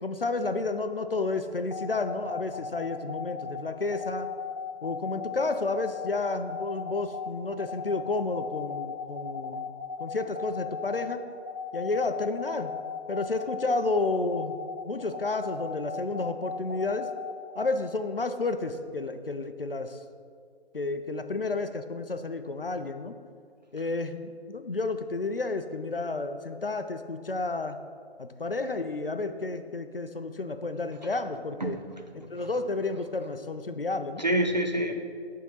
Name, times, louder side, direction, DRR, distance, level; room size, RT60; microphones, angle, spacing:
voice 1, 0.0-4.3 4.8-9.7 10.0-11.2 11.7-12.7 13.1-14.5 14.8-17.1 17.6-20.0 20.7-23.2 23.7-27.8 28.2-31.8 32.1-34.2, left 3 dB, 55° left, 9 dB, 0.5 m, -31 dB
sound 1, 1.7-17.7, left 6 dB, 80° right, 1.4 m, -36 dB
voice 2, 31.6-32.5 34.2-35.0, right 1 dB, 40° right, 3 dB, 0.6 m, -28 dB
10.0 x 3.7 x 5.5 m, 2.2 s
figure-of-eight pair, 160°, 33 cm